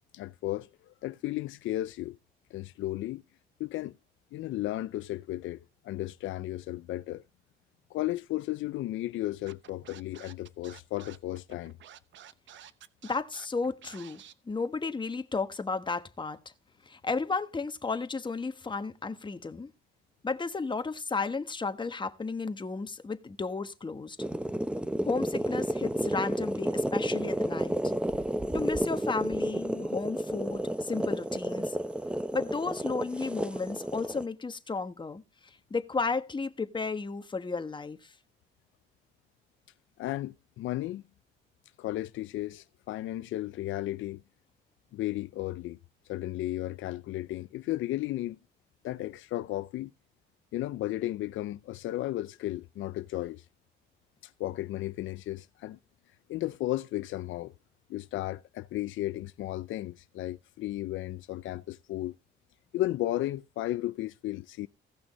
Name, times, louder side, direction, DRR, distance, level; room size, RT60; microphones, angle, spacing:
voice 1, 0.1-2.2 2.5-3.2 3.6-3.9 4.3-7.2 7.9-11.7 40.0-41.0 41.8-44.2 44.9-45.8 46.1-48.4 48.8-49.9 50.5-53.4 54.2-55.8 56.3-57.5 57.9-62.1 62.7-64.7, left 15 dB, 80° left, 0.5 m, -34 dB
Scratching (performance technique), 9.5-14.3, right 10 dB, 70° right, 0.9 m, -51 dB
voice 2, 13.0-16.5 16.8-19.7 20.2-24.2 25.0-27.8 28.5-31.8 32.3-38.1, left 4 dB, 25° left, 1.2 m, -33 dB
sound 1, 24.2-34.2, right 1 dB, 5° right, 0.8 m, -31 dB
16.5 x 6.1 x 4.2 m
cardioid pair, 90°, 20 cm